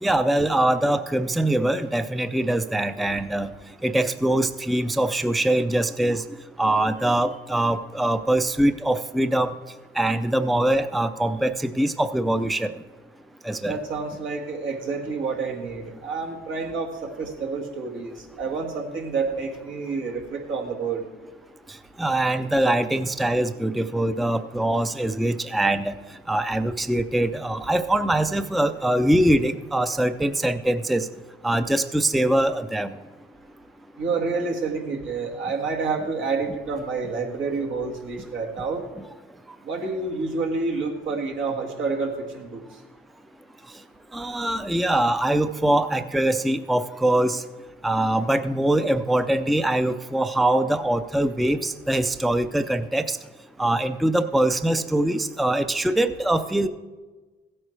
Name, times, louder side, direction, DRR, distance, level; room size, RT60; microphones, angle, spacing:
voice 1, 0.0-3.5 3.8-6.2 6.6-9.5 10.0-12.7 13.4-13.8 22.0-25.9 26.3-31.1 31.4-32.9 44.1-47.4 47.8-53.2 53.6-56.7, right 1 dB, ahead, 10 dB, 0.4 m, -23 dB
voice 2, 13.6-21.1 34.0-38.8 39.6-42.6, right 4 dB, 75° right, 0 dB, 1.9 m, -28 dB
15.5 x 8.6 x 3.3 m, 1.3 s
cardioid pair, 90°, 20 cm